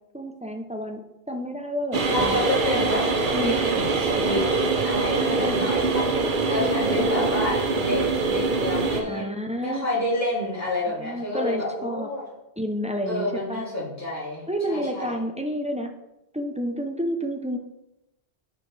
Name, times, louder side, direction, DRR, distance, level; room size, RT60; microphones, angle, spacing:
voice 1, 0.1-1.0 1.3-2.5 3.3-3.6 5.1-5.7 6.5-7.3 9.0-9.9 10.9-12.1 12.6-13.6 14.5-15.9 16.3-17.6, equal, 10° right, 4 dB, 0.5 m, -30 dB
sound 1, 1.9-9.0, right 3 dB, 55° right, 0.9 m, -24 dB
voice 2, 2.1-3.0 3.4-4.4 4.8-9.2 9.6-12.2 13.1-14.4 14.7-15.2, left 1 dB, 15° left, -8 dB, 2.7 m, -29 dB
9.7 x 5.0 x 3.3 m, 0.92 s
omnidirectional pair, 1.1 m